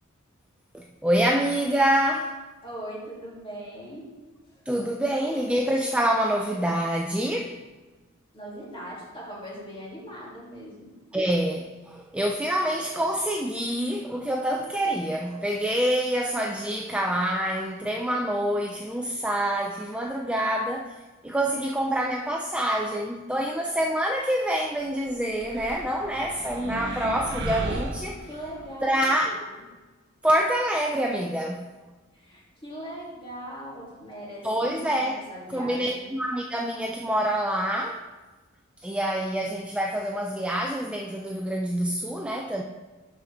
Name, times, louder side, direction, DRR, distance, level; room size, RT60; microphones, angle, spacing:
voice 1, 0.7-2.4 4.7-7.6 11.1-21.0 21.2-28.2 28.8-29.4 30.2-31.7 34.4-38.0 38.8-42.6, right 1 dB, 5° right, 1 dB, 0.4 m, -26 dB
voice 2, 2.6-4.1 4.5-4.6 8.3-10.9 26.7-27.0 27.9-29.7 32.1-36.1, equal, 25° left, -6 dB, 2.7 m, -40 dB
sound 1, 25.4-28.7, right 1 dB, 55° right, 0.9 m, -34 dB
11.5 x 4.9 x 3.5 m, 1.3 s
head